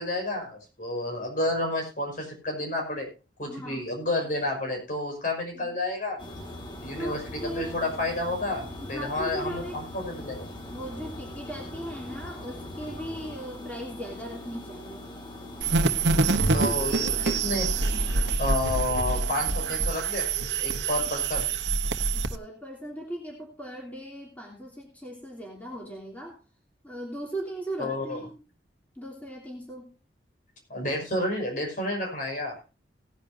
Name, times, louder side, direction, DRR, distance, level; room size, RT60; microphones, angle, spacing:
voice 1, 0.0-3.1 3.4-6.2 6.8-10.5 16.5-18.1 18.4-20.3 20.6-21.5 27.8-28.3 30.7-32.5, left 1 dB, 50° left, 1 dB, 5.9 m, -30 dB
voice 2, 3.5-3.8 5.5-5.7 6.9-7.8 8.8-9.8 10.2-10.3 10.7-15.1 16.5-17.5 22.1-26.4 26.8-28.4 28.9-29.9, right 1 dB, 10° left, -2 dB, 3.1 m, -38 dB
sound 1, 6.2-18.3, left 1 dB, 25° left, 2.1 m, -41 dB
sound 2, 15.6-22.4, right 4 dB, 90° right, 1.0 m, -26 dB
18.5 x 10.5 x 2.7 m, 0.32 s
head